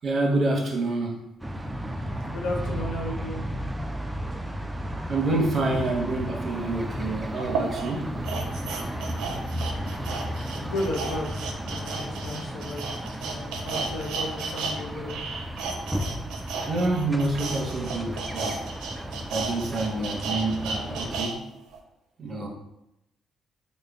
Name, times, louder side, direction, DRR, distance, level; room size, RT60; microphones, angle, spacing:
voice 1, 0.0-1.2 4.2-4.3 5.1-8.1 8.7-8.9 16.6-18.5 19.0-21.4 22.2-22.5, right 2 dB, 45° right, 1 dB, 0.8 m, -27 dB
sound 1, 1.4-21.2, equal, 10° right, 0.3 m, -34 dB
voice 2, 2.3-3.4 10.5-11.3 11.6-12.9 13.2-15.2, left 1 dB, 85° left, 0 dB, 0.7 m, -34 dB
sound 2, 6.6-6.7 7.4-14.8 15.0-21.3 21.7-21.8, right 4 dB, 85° right, 0.4 m, -33 dB
3.7 x 2.1 x 3.4 m, 0.87 s
cardioid pair, 85°, 0 cm